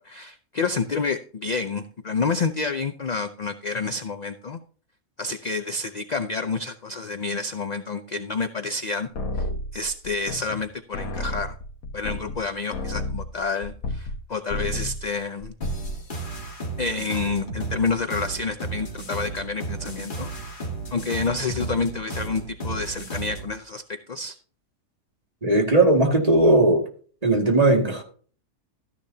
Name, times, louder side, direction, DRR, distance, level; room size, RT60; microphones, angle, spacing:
voice 1, 0.0-4.6 5.2-9.1 9.3-9.4 9.7-11.6 11.9-15.5 16.8-20.3 20.6-23.8 24.1-24.4, left 4 dB, 50° left, 9 dB, 0.5 m, -29 dB
sound 1, 9.1-10.7 10.9-14.2 14.5-15.1 15.4-16.0, left 1 dB, 75° left, 1.6 m, -31 dB
sound 2, 15.6-23.5, right 3 dB, 35° left, 2.0 m, -33 dB
voice 2, 25.4-26.8 27.2-28.0, right 2 dB, 25° right, 1 dB, 2.2 m, -18 dB
13.5 x 10.0 x 2.8 m, 0.43 s
omnidirectional pair, 1.5 m